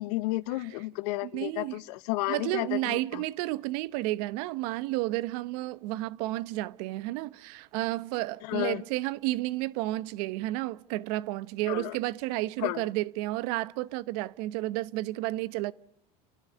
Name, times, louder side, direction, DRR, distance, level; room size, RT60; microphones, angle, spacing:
voice 1, 0.0-3.2 8.4-8.8 11.7-12.0 12.6-12.9, left 20 dB, 75° left, 1.0 m, -32 dB
voice 2, 1.2-1.8 2.3-15.7, right 18 dB, 70° right, 1.0 m, -31 dB
29.5 x 12.0 x 9.5 m
supercardioid pair, 105°, 20 cm